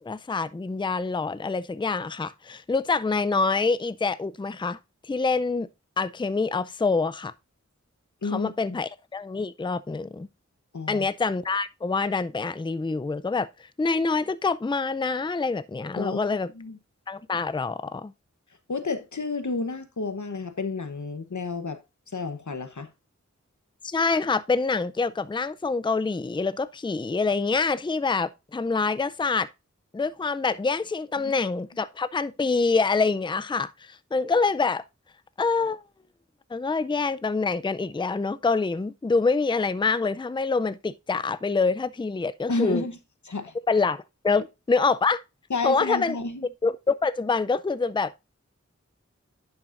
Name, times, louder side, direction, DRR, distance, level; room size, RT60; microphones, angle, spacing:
voice 1, 0.0-4.8 5.0-5.7 6.0-7.3 8.2-10.3 10.9-13.5 13.8-16.5 17.1-18.1 23.8-29.5 29.9-34.8 35.4-35.8 36.5-42.8 43.7-45.2 45.6-46.2 46.6-48.2, left 4 dB, 15° left, 0.4 m, -26 dB
voice 2, 8.2-8.8 10.7-11.1 16.0-16.8 18.7-21.8 22.1-22.9 31.2-31.3 42.5-43.0 43.2-43.5 45.5-46.5, left 3 dB, 85° left, 1.0 m, -31 dB
10.5 x 6.0 x 2.5 m
wide cardioid pair, 40°, 29 cm